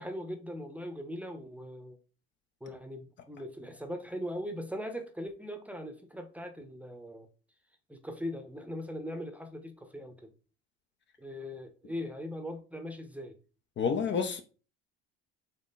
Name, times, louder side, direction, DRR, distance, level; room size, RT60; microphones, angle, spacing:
voice 1, 0.0-2.0 2.6-7.3 7.9-10.3 11.2-13.4, equal, 5° right, 0.8 m, -40 dB
voice 2, 13.8-14.4, left 6 dB, 35° left, 0.7 m, -29 dB
4.3 x 2.9 x 3.9 m
hypercardioid pair, 80°, 31 cm